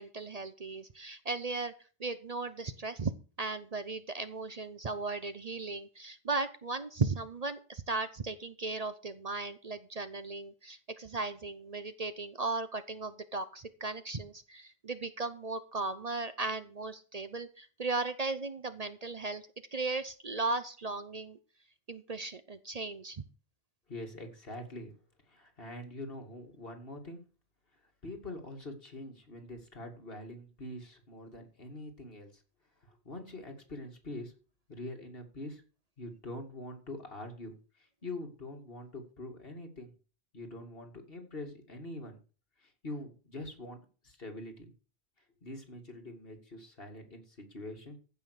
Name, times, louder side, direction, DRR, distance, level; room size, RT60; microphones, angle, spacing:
voice 1, 0.0-1.7 2.0-3.1 3.4-19.4 19.7-21.4 21.9-23.2, right 3 dB, 40° right, 11 dB, 0.8 m, -36 dB
voice 2, 23.9-24.9 25.3-27.2 28.0-32.4 32.8-34.3 34.7-35.6 36.0-37.5 38.0-39.9 40.3-42.2 42.6-43.8 44.0-44.7 45.4-48.0, left 1 dB, 65° left, 3 dB, 2.6 m, -44 dB
15.0 x 5.6 x 6.5 m, 0.37 s
omnidirectional pair, 1.1 m